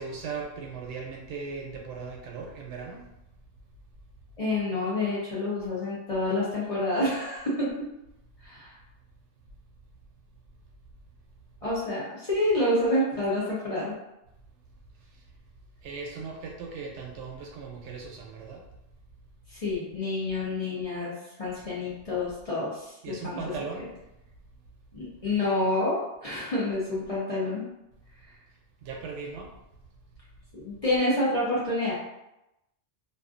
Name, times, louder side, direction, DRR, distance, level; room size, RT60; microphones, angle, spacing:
voice 1, 0.0-3.1 15.8-18.7 23.0-23.9 28.8-29.6, right 4 dB, 75° right, 0 dB, 0.8 m, -38 dB
voice 2, 4.4-7.9 8.4-8.7 11.6-13.9 19.5-23.4 24.9-27.7 30.5-31.9, left 1 dB, 40° left, -8 dB, 0.6 m, -28 dB
2.5 x 2.4 x 2.4 m, 0.90 s
omnidirectional pair, 1.3 m